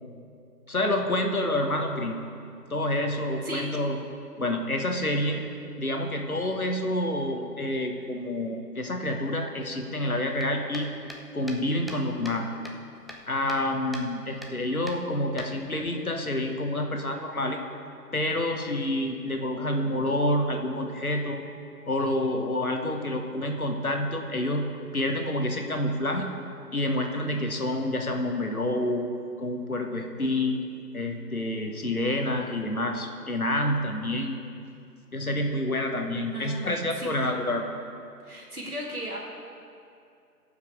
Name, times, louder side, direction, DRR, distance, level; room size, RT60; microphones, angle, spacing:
voice 1, 0.7-2.2 2.7-4.0 4.4-5.4 5.8-10.9 11.3-12.5 13.3-17.6 18.1-21.4 21.9-24.7 24.9-26.3 26.7-29.1 29.4-30.7 30.9-34.4 35.1-37.7, left 1 dB, 60° left, 3 dB, 1.2 m, -28 dB
sound 1, 10.4-12.4 12.6-13.7 13.9-14.1 14.4-14.6 14.9-15.9, equal, ahead, 0.5 m, -42 dB
voice 2, 36.3-37.1 38.2-39.2, right 1 dB, 65° right, -3 dB, 2.5 m, -36 dB
16.5 x 5.7 x 4.8 m, 2.5 s
figure-of-eight pair, 175°, 48 cm